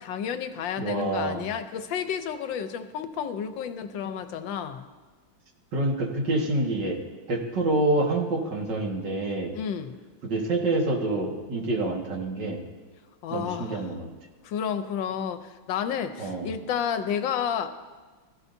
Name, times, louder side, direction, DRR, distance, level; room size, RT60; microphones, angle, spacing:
voice 1, 0.0-4.8 9.5-9.9 13.2-13.8 14.4-17.7, left 8 dB, 75° left, 9 dB, 1.4 m, -31 dB
voice 2, 0.8-1.4 5.7-7.0 7.3-9.5 10.2-12.6 13.3-14.1 16.2-16.6, right 2 dB, 65° right, 0 dB, 2.4 m, -27 dB
21.0 x 14.0 x 2.7 m, 1.3 s
omnidirectional pair, 2.1 m